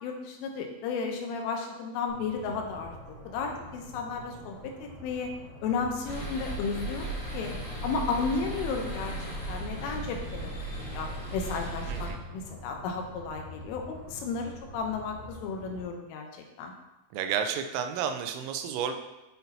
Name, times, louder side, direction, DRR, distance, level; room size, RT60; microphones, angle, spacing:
voice 1, 0.0-2.9 3.2-5.3 5.6-7.1 7.3-7.5 7.8-9.1 9.5-13.8 14.1-16.3 16.6-16.7, left 5 dB, 80° left, 3 dB, 3.2 m, -33 dB
sound 1, 2.1-15.8, equal, 50° right, 2.2 m, -47 dB
sound 2, 6.0-12.1, right 2 dB, 40° left, 1.5 m, -36 dB
voice 2, 11.9-12.2 17.1-18.9, right 8 dB, 90° right, 7 dB, 3.3 m, -31 dB
9.0 x 5.9 x 2.8 m, 1.0 s
omnidirectional pair, 5.8 m